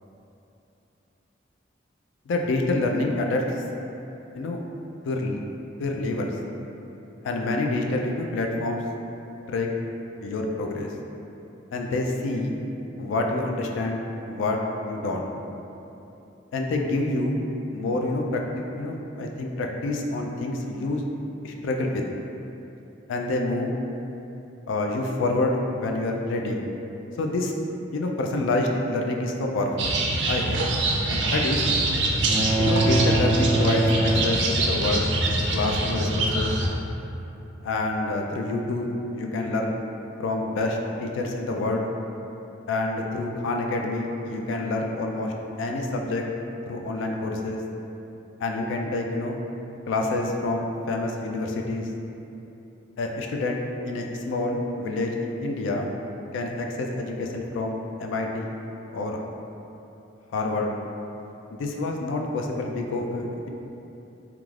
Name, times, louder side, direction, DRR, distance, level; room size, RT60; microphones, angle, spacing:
voice 1, 2.3-3.4 4.3-4.6 5.0-5.4 5.8-6.3 7.2-8.8 9.5-9.7 10.2-10.9 11.7-12.6 13.0-14.0 14.3-14.6 14.9-15.2 16.5-17.4 17.7-18.4 18.8-21.0 21.4-22.1 23.1-23.7 24.7-26.7 27.2-27.5 27.9-29.9 30.3-30.7 31.1-31.6 32.6-35.0 35.5-36.5 37.6-39.8 40.2-41.8 42.7-46.2 46.7-47.6 48.4-49.4 49.9-51.9 53.0-55.9 56.3-58.5 58.9-59.2 60.3-60.8 61.5-63.5, left 2 dB, 85° left, 1 dB, 0.3 m, -27 dB
sound 1, 29.8-36.7, right 2 dB, 65° right, 0.3 m, -24 dB
sound 2, 32.3-34.8, right 2 dB, 15° right, 0.6 m, -24 dB
2.3 x 2.3 x 3.1 m, 2.9 s
head